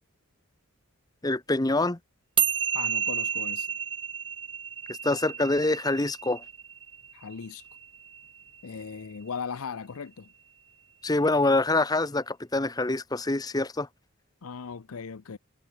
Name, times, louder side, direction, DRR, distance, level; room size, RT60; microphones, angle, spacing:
voice 1, 1.2-2.0 5.0-6.4 11.0-13.9, left 2 dB, 20° left, 0.8 m, -25 dB
sound 1, 2.4-8.9, right 8 dB, 25° right, 0.7 m, -31 dB
voice 2, 2.7-3.7 7.1-7.7 8.6-10.3 14.4-15.4, left 5 dB, 90° left, 0.6 m, -38 dB
head